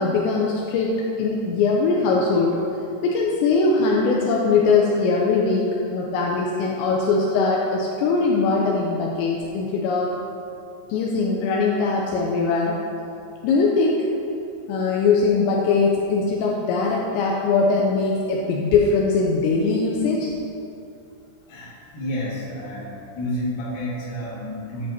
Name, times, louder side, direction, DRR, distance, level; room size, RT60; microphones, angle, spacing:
voice 1, 0.0-2.6 3.0-10.1 10.9-12.8 13.4-14.1 14.7-20.3, left 4 dB, 80° left, -2 dB, 2.9 m, -21 dB
voice 2, 21.5-24.9, left 1 dB, 55° left, -6 dB, 3.4 m, -30 dB
13.5 x 8.7 x 2.9 m, 2.6 s
omnidirectional pair, 5.3 m